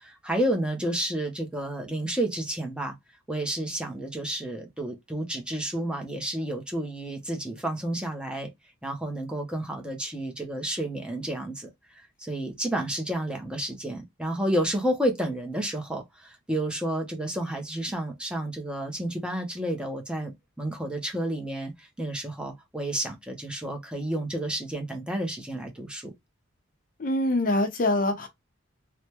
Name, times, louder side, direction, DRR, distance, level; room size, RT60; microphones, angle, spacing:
voice 1, 0.0-2.9 3.3-8.5 8.8-20.3 20.6-26.1, right 1 dB, 5° right, 0.7 m, -31 dB
voice 2, 27.0-28.3, left 1 dB, 45° left, 0.7 m, -24 dB
3.2 x 2.1 x 2.9 m
head